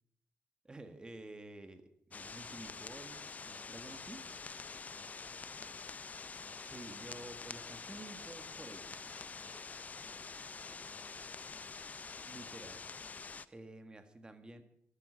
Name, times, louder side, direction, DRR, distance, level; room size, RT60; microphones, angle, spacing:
voice 1, 0.6-4.2 6.6-9.3 12.3-12.8 13.5-14.6, right 2 dB, 20° right, 7 dB, 1.7 m, -51 dB
sound 1, 2.1-13.4, left 4 dB, 30° left, 0.5 m, -47 dB
voice 2, 4.2-5.9 6.2-6.4 9.4-11.7, left 1 dB, 5° left, 3 dB, 3.0 m, -66 dB
sound 2, 4.9-11.0, right 5 dB, 65° right, 3.1 m, -71 dB
13.0 x 13.0 x 6.4 m, 0.72 s
cardioid pair, 120°, 5 cm